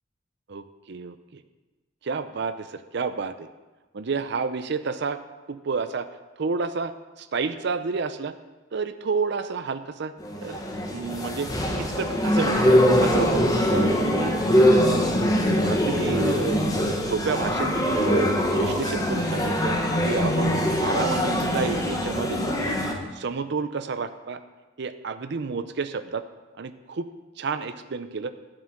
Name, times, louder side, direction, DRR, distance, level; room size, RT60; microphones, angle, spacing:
voice 1, 0.5-1.4 2.0-3.5 3.9-5.2 5.5-6.1 6.4-8.3 8.7-10.6 10.9-11.5 11.8-13.4 13.7-14.4 14.7-15.1 15.6-18.3 18.6-19.8 20.0-22.8 23.1-24.4 24.8-26.2 26.6-27.1 27.4-28.3, right 4 dB, 65° right, 10 dB, 0.5 m, -30 dB
sound 1, 10.2-22.9, equal, 20° left, 1.2 m, -23 dB
11.0 x 7.6 x 5.9 m, 1.2 s
head